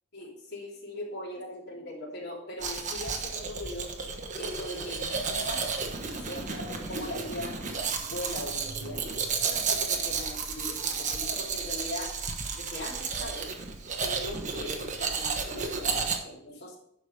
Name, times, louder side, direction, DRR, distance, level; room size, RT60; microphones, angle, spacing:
voice 1, 0.1-3.9 4.4-5.7 6.3-7.6 8.0-9.0 9.4-12.1 12.5-13.5 14.0-16.8, left 1 dB, 55° left, -4 dB, 3.2 m, -40 dB
Domestic sounds home sounds, 2.6-16.2, right 5 dB, 40° right, 1.2 m, -32 dB
11.5 x 5.1 x 5.2 m, 0.73 s
head